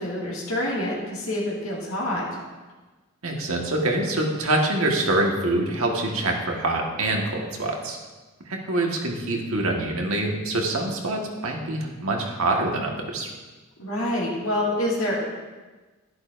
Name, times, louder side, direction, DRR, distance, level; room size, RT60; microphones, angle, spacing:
voice 1, 0.0-2.3 13.8-15.3, left 1 dB, 90° left, -5 dB, 2.1 m, -27 dB
voice 2, 3.2-8.0 8.5-13.3, right 2 dB, 90° right, 1 dB, 1.5 m, -25 dB
11.0 x 11.0 x 2.6 m, 1.3 s
head